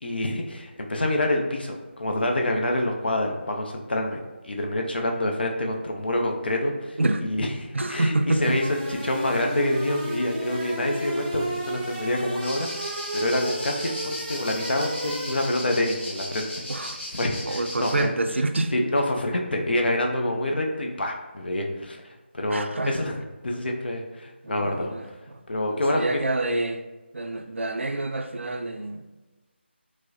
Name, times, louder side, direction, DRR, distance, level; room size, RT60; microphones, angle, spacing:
voice 1, 0.0-18.1 18.7-24.9 25.5-26.2, left 1 dB, 60° left, 2 dB, 0.6 m, -27 dB
voice 2, 7.7-8.5 16.7-17.0 17.5-18.7 22.5-22.9 24.4-25.0 25.7-26.8 27.1-29.1, right 2 dB, 85° right, 6 dB, 0.4 m, -27 dB
sound 1, 8.4-15.8, right 1 dB, 20° right, 0.5 m, -34 dB
sound 2, 12.4-18.0, left 1 dB, 10° left, 1.5 m, -36 dB
4.5 x 2.1 x 2.8 m, 1.2 s
figure-of-eight pair, 165°, 6 cm